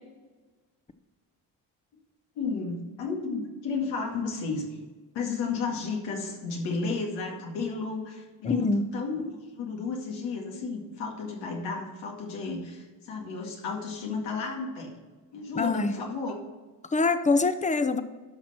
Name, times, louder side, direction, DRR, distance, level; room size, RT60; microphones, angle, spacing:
voice 1, 2.4-4.8 5.1-8.7 8.9-14.9 15.3-16.4, left 4 dB, 90° left, 0 dB, 2.2 m, -33 dB
voice 2, 8.4-8.9 15.5-15.9 16.9-18.0, left 3 dB, 15° left, 11 dB, 0.8 m, -24 dB
12.0 x 6.0 x 4.3 m, 1.3 s
supercardioid pair, 65°, 42 cm